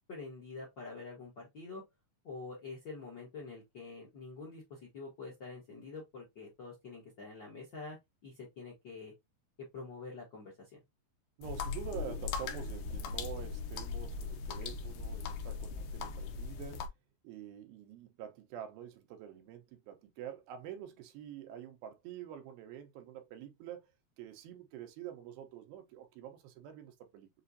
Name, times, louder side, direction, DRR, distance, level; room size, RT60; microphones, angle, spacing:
voice 1, 0.1-1.8 2.2-9.1 9.7-10.8, left 3 dB, 55° left, 1.3 m, -46 dB
sound 1, 11.4-16.9, left 5 dB, 75° left, 1.9 m, -39 dB
voice 2, 11.4-16.9 17.2-23.9 24.2-27.3, right 10 dB, 80° right, 2.6 m, -47 dB
6.6 x 2.4 x 2.6 m
omnidirectional pair, 4.2 m